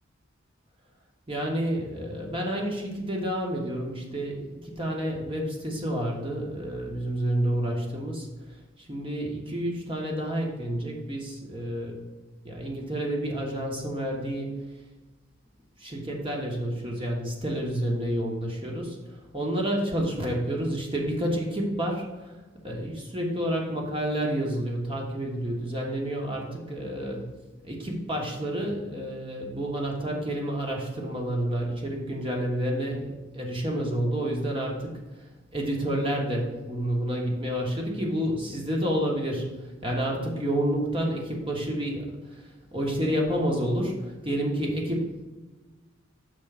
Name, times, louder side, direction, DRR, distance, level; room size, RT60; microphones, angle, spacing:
voice 1, 1.3-8.3 8.8-12.0 12.4-14.6 15.8-19.0 19.3-22.4 22.6-27.3 27.6-33.1 33.3-35.0 35.5-39.5 39.8-45.2, right 1 dB, 25° right, -1 dB, 1.3 m, -29 dB
6.4 x 3.8 x 6.1 m, 1.2 s
head